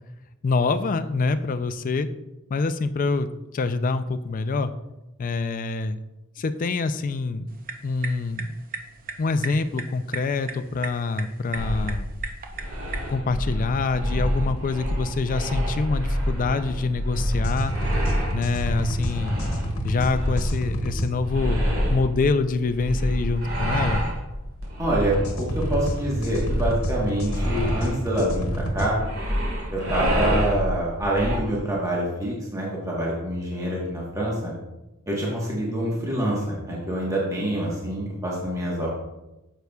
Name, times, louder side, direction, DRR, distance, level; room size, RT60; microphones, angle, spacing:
voice 1, 0.4-2.1 2.5-4.7 5.2-6.0 6.4-7.5 7.8-8.5 9.2-12.1 13.1-17.7 18.3-19.4 19.8-21.6 21.9-24.0, left 3 dB, 40° left, 11 dB, 0.4 m, -25 dB
sound 1, 7.5-13.1, right 4 dB, 40° right, 0.7 m, -38 dB
sound 2, 11.5-31.4, equal, 65° right, 2.6 m, -27 dB
sound 3, 17.2-21.1 25.0-28.9, right 1 dB, 70° left, 1.1 m, -30 dB
voice 2, 24.8-29.0 29.7-34.5 35.1-38.9, right 1 dB, 15° right, -5 dB, 1.2 m, -26 dB
9.2 x 6.8 x 2.3 m, 1.0 s
head